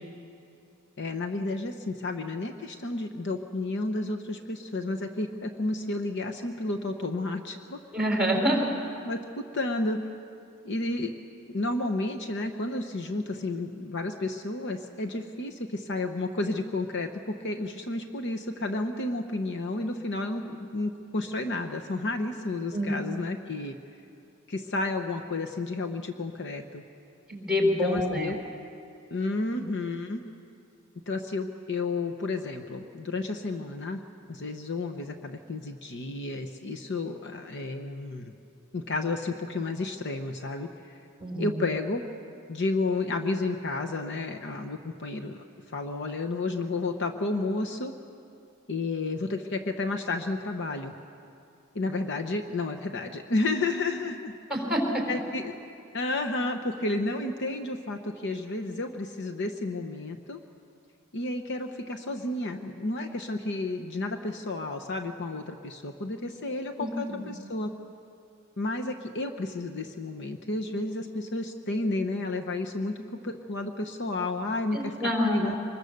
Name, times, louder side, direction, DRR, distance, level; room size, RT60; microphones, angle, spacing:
voice 1, 1.0-7.8 9.0-10.1 10.6-11.1 11.5-23.7 24.5-26.8 27.6-28.4 29.1-30.2 31.1-34.0 34.3-38.3 38.7-41.0 41.4-42.0 42.5-45.4 45.7-47.9 48.7-50.9 51.7-54.3 55.1-55.5 55.9-60.4 61.1-67.7 68.6-74.9 75.2-75.6, left 2 dB, 55° left, 5 dB, 1.0 m, -31 dB
voice 2, 7.9-8.6 22.7-22.9 27.3-28.3 41.2-41.5 54.5-55.0 66.8-67.2 74.7-75.5, equal, 5° right, 0 dB, 4.3 m, -27 dB
25.0 x 21.5 x 6.6 m, 2.5 s
head